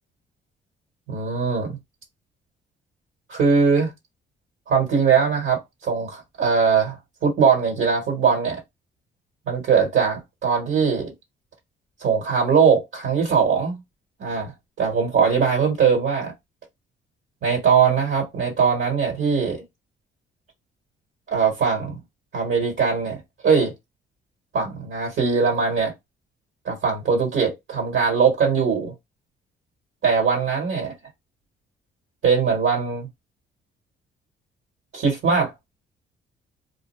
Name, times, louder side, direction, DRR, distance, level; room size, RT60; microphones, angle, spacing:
voice 1, 1.1-1.8 3.3-3.9 4.7-8.6 9.5-11.1 12.0-13.8 14.2-14.5 14.8-16.3 17.4-19.6 21.3-22.0 22.3-23.7 24.5-25.9 26.6-28.9 30.0-30.9 32.2-33.1 34.9-35.5, right 6 dB, 75° right, 1.3 m, -21 dB
2.4 x 2.3 x 3.1 m
cardioid pair, 90°, 20 cm